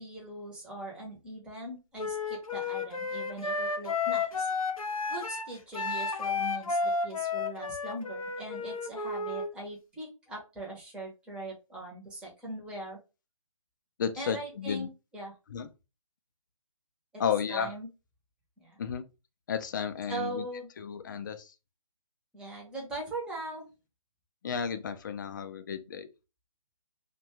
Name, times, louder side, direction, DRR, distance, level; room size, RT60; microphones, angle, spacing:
voice 1, 0.0-4.5 5.1-13.0 14.2-15.4 17.1-17.2 17.5-17.9 18.6-18.8 20.1-20.7 22.3-23.7, right 2 dB, 5° right, 0.6 m, -40 dB
Wind instrument woodwind instrument, 2.0-9.5, left 4 dB, 85° left, 0.6 m, -32 dB
voice 2, 14.0-14.9 15.5-15.7 17.2-17.7 18.8-19.0 19.5-20.4 20.8-21.5 24.4-26.1, left 7 dB, 35° left, 0.4 m, -33 dB
2.6 x 2.2 x 3.0 m
figure-of-eight pair, 145°, 18 cm